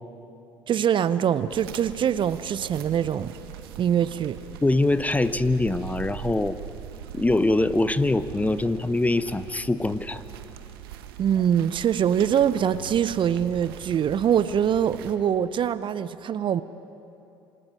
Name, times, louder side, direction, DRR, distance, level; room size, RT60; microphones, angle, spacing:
voice 1, 0.7-3.3 3.8-4.4 11.2-16.6, right 9 dB, 40° right, 15 dB, 0.6 m, -23 dB
sound 1, 1.5-15.2, right 11 dB, 75° right, 1.1 m, -41 dB
voice 2, 4.6-6.6 7.1-10.2, left 2 dB, 10° left, 14 dB, 0.9 m, -23 dB
27.0 x 13.5 x 8.8 m, 2.8 s
hypercardioid pair, 60°, 12 cm